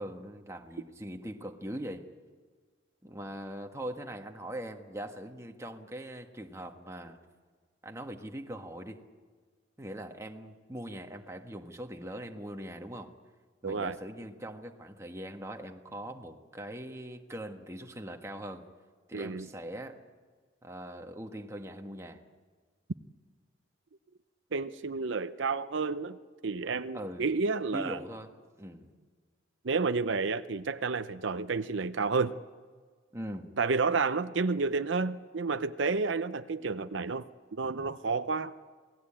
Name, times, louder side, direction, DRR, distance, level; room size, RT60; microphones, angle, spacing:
voice 1, 0.0-2.0 3.0-7.2 7.8-9.0 9.8-13.1 13.6-18.7 19.1-20.0 20.6-22.2 26.9-27.3 27.7-28.3 28.6-28.9 33.1-33.5, right 1 dB, 15° right, 4 dB, 1.5 m, -41 dB
voice 2, 13.6-14.0 19.1-19.5 24.5-26.2 26.4-28.0 29.6-32.4 33.6-38.5, right 4 dB, 75° right, 11 dB, 0.7 m, -30 dB
27.5 x 18.5 x 8.8 m, 1.5 s
head